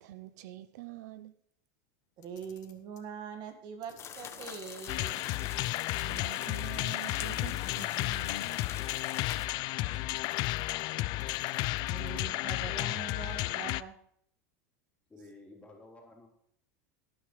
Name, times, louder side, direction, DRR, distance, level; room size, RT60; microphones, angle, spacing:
voice 1, 0.0-1.3 5.9-8.7, right 13 dB, 75° right, 14 dB, 0.6 m, -46 dB
Camera, 2.1-3.1 3.8-5.3 5.6-5.7 6.7-8.3 10.1-10.9 11.2-12.4, left 10 dB, 85° left, 1.8 m, -60 dB
voice 2, 2.2-5.2 6.7-6.8 9.8-10.0 11.9-14.0, right 6 dB, 50° right, 6 dB, 1.8 m, -43 dB
sound 1, 4.0-9.5, left 7 dB, 30° left, 1.2 m, -45 dB
sound 2, 4.9-13.8, left 18 dB, 50° left, 0.4 m, -33 dB
voice 3, 15.1-16.3, left 2 dB, 15° left, -2 dB, 3.6 m, -52 dB
19.0 x 9.0 x 3.3 m, 0.71 s
supercardioid pair, 120°, 9 cm